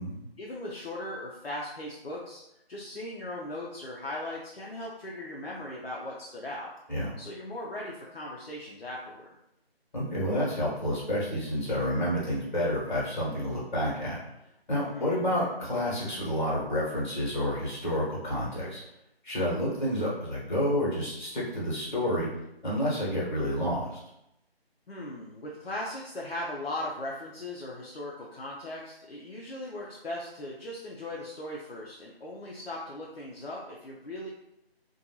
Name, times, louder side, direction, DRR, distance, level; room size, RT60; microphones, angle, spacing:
voice 1, 0.4-2.4 2.7-6.7 7.2-9.3 14.8-15.3 24.9-34.3, left 1 dB, 70° left, -4 dB, 0.6 m, -38 dB
voice 2, 9.9-14.2 14.7-18.8 19.2-22.3 22.6-24.0, equal, 45° left, -6 dB, 1.2 m, -29 dB
2.6 x 2.2 x 2.8 m, 0.84 s
figure-of-eight pair, 160°, 31 cm